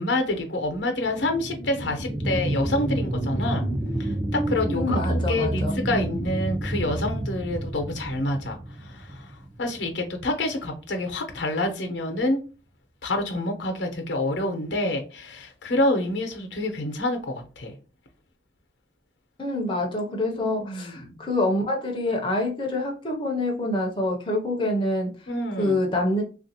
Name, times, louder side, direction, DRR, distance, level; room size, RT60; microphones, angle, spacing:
voice 1, 0.0-3.7 4.0-12.4 13.0-17.7 20.4-21.1 25.3-25.8, left 1 dB, 85° left, 0.8 m, -27 dB
sound 1, 1.0-10.1 10.5-10.6, right 1 dB, 25° right, 0.4 m, -29 dB
voice 2, 4.7-5.8 19.4-25.1 25.6-26.2, left 1 dB, 30° left, 0.5 m, -26 dB
3.3 x 2.5 x 2.8 m
head